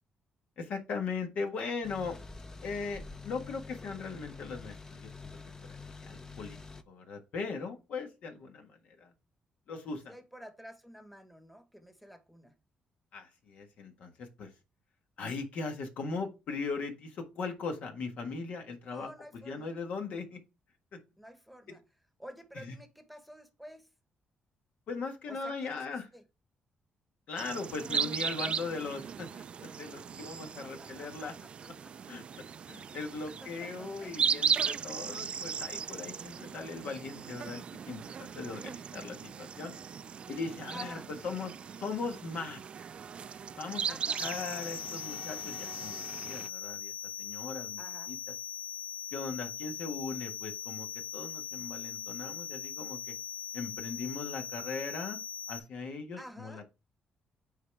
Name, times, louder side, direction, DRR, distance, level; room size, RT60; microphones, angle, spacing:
voice 1, 0.6-2.2 2.6-5.1 6.0-6.6 6.9-8.7 9.0-9.1 9.7-10.1 13.1-14.5 15.2-19.1 19.4-20.4 20.9-21.0 22.5-22.7 24.9-26.1 27.3-31.3 32.1-32.2 32.7-39.7 40.3-41.0 41.2-41.5 41.8-42.6 43.6-43.9 44.2-46.9 47.2-47.8 48.1-48.2 49.1-50.9 51.1-53.1 53.5-55.2 55.5-56.7, left 4 dB, 70° left, 1.5 m, -39 dB
sound 1, 1.8-6.8, left 4 dB, 20° left, 0.7 m, -47 dB
voice 2, 10.1-12.5 18.9-19.7 21.2-21.8 22.2-23.9 25.3-26.2 30.3-31.9 33.3-34.1 40.7-41.1 43.9-44.2 47.8-48.2 56.2-56.6, equal, ahead, 1.2 m, -50 dB
sound 2, 27.4-46.5, right 7 dB, 45° right, 0.3 m, -37 dB
sound 3, 44.2-55.6, left 7 dB, 50° left, 1.0 m, -40 dB
9.1 x 3.9 x 3.3 m
cardioid pair, 120°, 3 cm